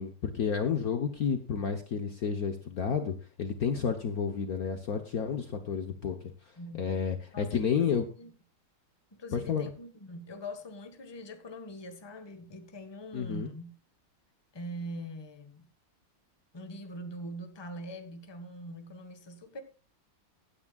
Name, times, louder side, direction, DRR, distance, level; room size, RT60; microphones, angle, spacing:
voice 1, 0.0-6.2 6.8-8.1 9.3-9.7 13.1-13.5, left 6 dB, 55° left, 1.3 m, -31 dB
voice 2, 6.6-6.9 7.3-8.3 9.1-13.7 14.5-15.6 16.5-19.6, equal, 15° left, 1.2 m, -43 dB
16.5 x 9.8 x 2.3 m
omnidirectional pair, 2.3 m